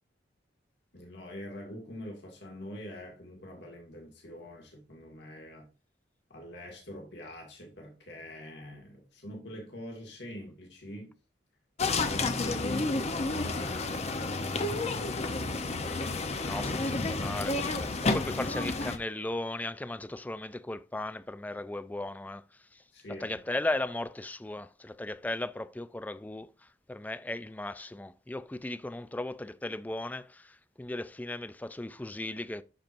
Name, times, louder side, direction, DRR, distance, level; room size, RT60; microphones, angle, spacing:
voice 1, 0.9-5.7 6.3-11.1 11.9-14.6 18.4-18.5 22.9-23.4, equal, 65° left, 2.0 m, -44 dB
sound 1, 11.8-19.0, left 3 dB, 35° left, 0.7 m, -30 dB
voice 2, 16.5-22.4 22.7-22.8 23.1-32.6, left 2 dB, 10° left, 0.3 m, -37 dB
12.0 x 4.4 x 2.6 m
head